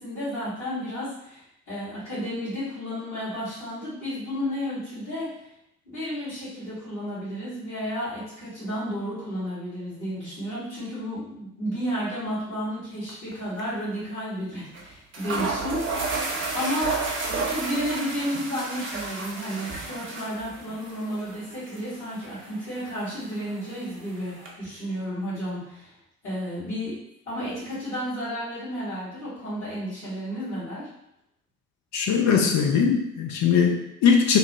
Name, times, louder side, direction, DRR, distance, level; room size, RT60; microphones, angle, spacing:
voice 1, 0.0-5.3 5.8-16.1 16.5-25.9 26.2-27.0 27.3-30.9, equal, 80° left, -16 dB, 1.4 m, -32 dB
sound 1, 13.1-13.3 13.6-13.7 14.7-14.8 15.1-24.5, right 3 dB, 30° right, 0.7 m, -33 dB
voice 2, 31.9-34.4, left 6 dB, 45° left, 2 dB, 0.5 m, -20 dB
2.9 x 2.0 x 2.9 m, 0.77 s
figure-of-eight pair, 40°, 39 cm